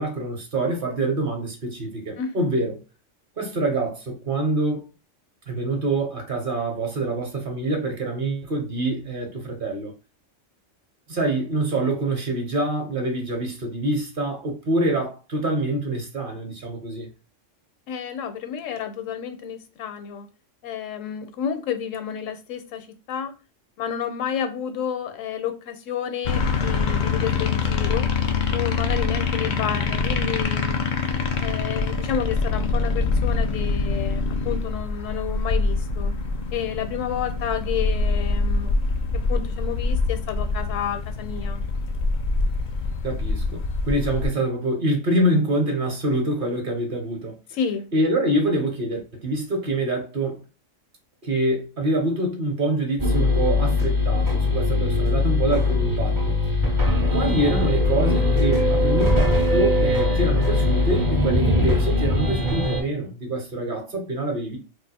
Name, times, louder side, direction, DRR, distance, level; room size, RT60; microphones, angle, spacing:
voice 1, 0.0-2.8 3.4-4.9 5.5-9.9 11.1-17.1 43.0-47.3 47.9-50.4 51.2-56.3 57.1-64.6, right 1 dB, 50° right, 0.8 m, -25 dB
voice 2, 2.2-2.5 17.9-20.3 20.6-23.3 23.8-28.1 28.5-30.8 31.3-36.1 36.5-38.8 39.1-41.6 47.5-47.9, left 8 dB, 80° left, 0.9 m, -30 dB
sound 1, 26.2-44.3, left 4 dB, 60° left, 0.5 m, -25 dB
sound 2, 53.0-62.8, left 2 dB, 25° right, 0.4 m, -21 dB
2.4 x 2.4 x 4.0 m
omnidirectional pair, 1.3 m